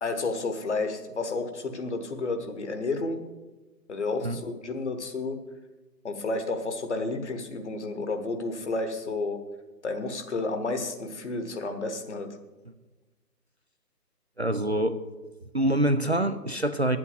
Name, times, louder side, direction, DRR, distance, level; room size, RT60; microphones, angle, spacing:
voice 1, 0.0-3.2 3.9-5.4 6.0-9.4 9.8-12.3, left 3 dB, 45° left, 7 dB, 1.4 m, -31 dB
voice 2, 14.4-15.0 15.5-17.0, right 1 dB, 45° right, 11 dB, 0.5 m, -25 dB
9.1 x 8.4 x 8.3 m, 1.2 s
figure-of-eight pair, 145°, 49 cm